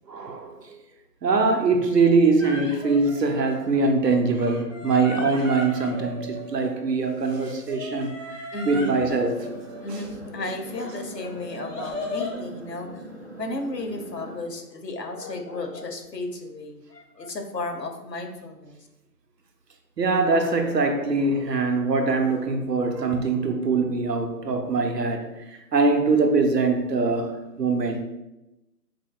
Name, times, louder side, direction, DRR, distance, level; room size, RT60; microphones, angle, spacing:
voice 1, 0.1-0.8 1.2-9.5 9.9-10.0 20.0-28.0, right 3 dB, 80° right, 0.8 m, -23 dB
sound 1, 2.4-3.9 4.3-6.9 7.3-10.3 10.7-12.4, left 2 dB, 50° left, 1.0 m, -37 dB
voice 2, 8.5-9.1 9.8-12.9 13.4-18.8, left 2 dB, 85° left, 1.0 m, -34 dB
sound 2, 9.0-14.4, equal, 40° right, 0.9 m, -42 dB
4.7 x 3.2 x 2.3 m
figure-of-eight pair, 180°, 48 cm